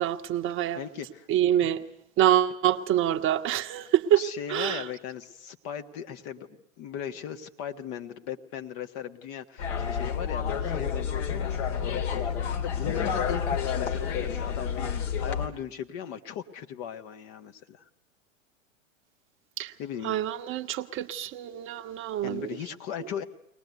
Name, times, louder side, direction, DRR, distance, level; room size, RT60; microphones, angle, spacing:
voice 1, 0.0-0.8 1.3-1.8 2.2-4.2 4.5-4.8 19.6-19.7 20.0-22.5, right 11 dB, 30° right, 7 dB, 1.0 m, -26 dB
voice 2, 0.7-1.3 4.2-6.5 6.8-11.5 11.8-17.8 19.8-20.2 22.2-23.2, left 8 dB, 45° left, 7 dB, 1.5 m, -38 dB
sound 1, 9.6-15.5, left 7 dB, 60° left, 3.0 m, -29 dB
22.5 x 19.0 x 9.4 m, 0.76 s
hypercardioid pair, 100°, 40 cm